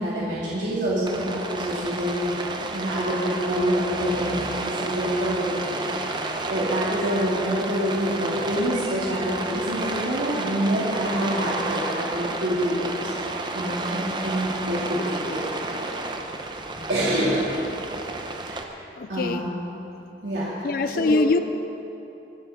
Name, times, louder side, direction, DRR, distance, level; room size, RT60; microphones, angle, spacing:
voice 1, 0.0-5.8 6.5-15.9 16.9-17.5 18.5-18.6 19.1-19.5 20.2-20.7 20.9-21.2, equal, 75° right, -8 dB, 2.6 m, -26 dB
Rain, 1.1-18.6, right 2 dB, 25° right, 0.8 m, -31 dB
voice 2, 19.0-19.5 20.6-21.4, left 3 dB, 50° left, 10 dB, 0.4 m, -23 dB
23.5 x 8.6 x 5.7 m, 2.9 s
head